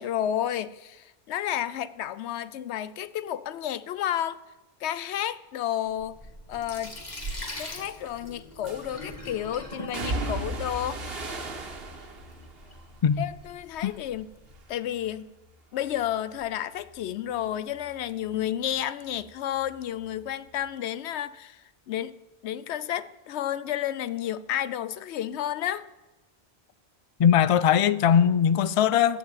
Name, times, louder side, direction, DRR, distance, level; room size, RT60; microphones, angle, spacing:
voice 1, 0.0-4.4 4.8-6.2 6.5-7.0 7.6-11.4 13.2-14.3 14.7-15.3 15.7-22.2 22.4-25.8, left 11 dB, 85° left, 0.9 m, -31 dB
Sink (filling or washing), 5.9-14.7, left 1 dB, 40° left, 1.9 m, -43 dB
sound 1, 7.2-7.4 8.7-9.1 9.9-14.2 14.5-15.1 15.5-18.8 19.0-20.2 20.5-20.6, right 2 dB, 65° right, 1.5 m, -37 dB
voice 2, 27.2-29.2, left 8 dB, 60° left, 0.3 m, -20 dB
14.5 x 5.0 x 8.9 m
omnidirectional pair, 1.1 m